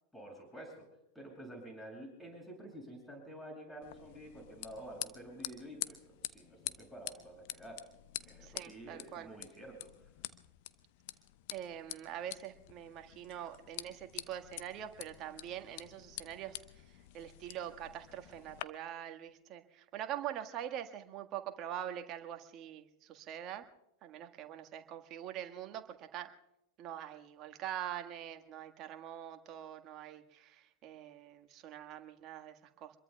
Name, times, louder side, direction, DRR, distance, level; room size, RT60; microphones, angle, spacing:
voice 1, 0.1-0.9 1.1-7.8 8.2-10.1, right 1 dB, 5° left, 0 dB, 7.6 m, -49 dB
sound 1, 3.8-18.6, left 16 dB, 55° left, 0.9 m, -47 dB
voice 2, 8.4-9.3 11.5-16.6 17.1-23.6 24.0-26.3 26.8-32.9, right 11 dB, 40° right, 6 dB, 1.7 m, -44 dB
27.0 x 22.0 x 2.4 m, 0.85 s
hypercardioid pair, 95°, 0 cm